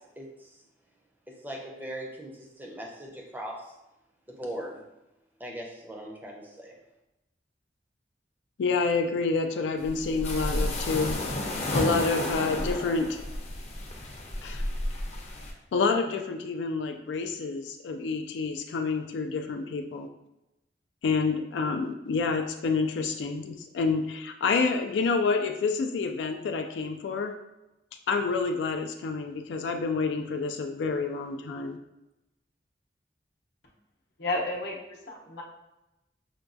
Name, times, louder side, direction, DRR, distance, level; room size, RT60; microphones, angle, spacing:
voice 1, 0.2-0.5 1.3-3.7 4.3-4.8 5.4-6.8, right 1 dB, 10° right, -1 dB, 0.5 m, -40 dB
voice 2, 8.6-11.2 11.7-13.2 14.4-14.6 15.7-20.1 21.0-27.3 28.1-31.8, left 4 dB, 90° left, 5 dB, 0.3 m, -28 dB
sound 1, 9.8-15.5, left 1 dB, 40° left, 0.6 m, -32 dB
voice 3, 34.2-35.4, left 2 dB, 70° left, -1 dB, 0.8 m, -32 dB
5.8 x 2.2 x 2.6 m, 0.95 s
head